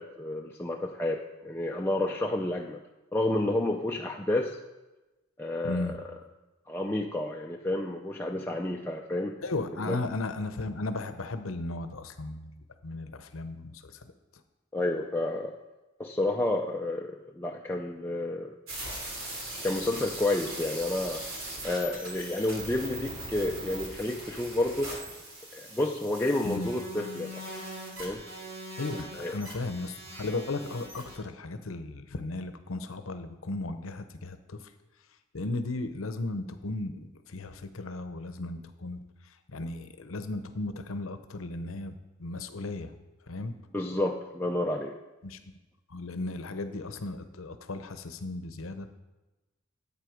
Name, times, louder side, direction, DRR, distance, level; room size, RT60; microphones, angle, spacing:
voice 1, 0.0-2.8 3.1-4.6 5.4-5.9 6.7-9.4 9.8-10.0 14.7-15.6 16.0-18.5 19.6-21.2 21.6-24.9 25.5-27.5 28.0-28.3 29.2-29.3 43.7-45.0, left 1 dB, 10° left, 0 dB, 0.5 m, -30 dB
voice 2, 5.6-6.0 9.4-12.5 12.8-14.1 26.4-26.7 28.8-34.7 35.3-42.9 43.3-43.5 45.2-45.4 45.9-48.9, left 2 dB, 90° left, 9 dB, 0.9 m, -35 dB
sound 1, 18.7-31.2, right 1 dB, 85° right, 3.0 m, -40 dB
11.0 x 8.4 x 5.0 m, 1.1 s
head